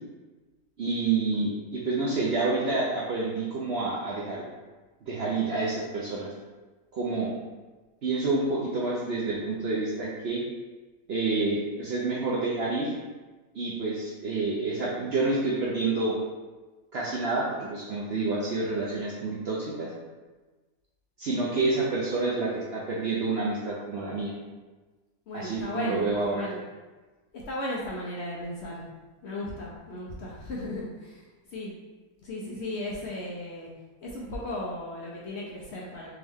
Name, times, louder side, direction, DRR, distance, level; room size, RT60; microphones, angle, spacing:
voice 1, 0.8-4.4 5.1-6.3 6.9-7.3 8.0-10.4 11.1-12.9 13.5-16.2 16.9-19.9 21.2-24.3 25.3-26.5, right 3 dB, 60° right, -5 dB, 0.7 m, -28 dB
voice 2, 25.3-26.6 27.3-28.8 29.2-31.2 31.5-31.7 32.2-33.7 34.0-36.1, left 1 dB, 60° left, -5 dB, 0.8 m, -35 dB
3.5 x 3.2 x 3.5 m, 1.3 s
omnidirectional pair, 1.6 m